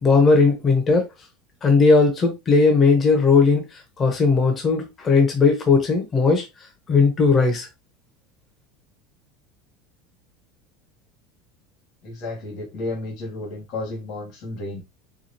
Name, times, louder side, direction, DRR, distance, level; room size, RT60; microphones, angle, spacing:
voice 1, 0.0-1.1 1.6-3.6 4.0-6.5 6.9-7.7, left 4 dB, 25° left, 1.0 m, -17 dB
voice 2, 12.0-14.8, left 2 dB, 50° left, 2.0 m, -32 dB
4.8 x 2.4 x 2.8 m
supercardioid pair, 135°, 0 cm